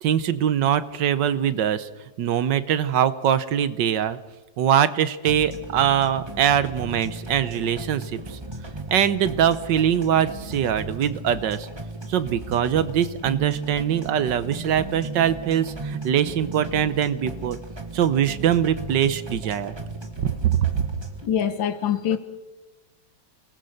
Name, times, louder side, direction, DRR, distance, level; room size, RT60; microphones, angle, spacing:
voice 1, 0.0-1.9 2.2-4.2 4.6-8.4 8.9-11.7 12.1-17.6 17.9-19.7 20.2-20.5, right 9 dB, 70° right, 1.5 m, -22 dB
sound 1, 5.3-21.3, right 2 dB, 15° right, 1.3 m, -36 dB
voice 2, 21.2-22.2, left 9 dB, 80° left, 2.0 m, -24 dB
26.5 x 19.5 x 6.6 m
omnidirectional pair, 2.1 m